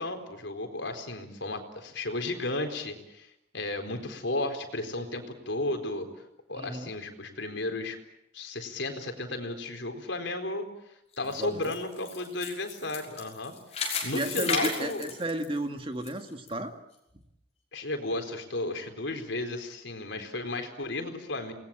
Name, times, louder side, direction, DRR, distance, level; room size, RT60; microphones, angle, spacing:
voice 1, 0.0-3.3 3.5-6.1 6.5-8.0 8.3-10.7 11.2-13.5 14.0-15.1 17.7-21.5, left 2 dB, 70° left, 6 dB, 4.2 m, -34 dB
voice 2, 6.6-6.9 11.4-11.7 14.1-16.7, right 1 dB, 25° right, 6 dB, 2.1 m, -33 dB
sound 1, 11.1-16.1 16.5-16.6 17.2-17.3, left 5 dB, 35° left, 6.0 m, -34 dB
28.5 x 20.5 x 8.9 m, 0.85 s
head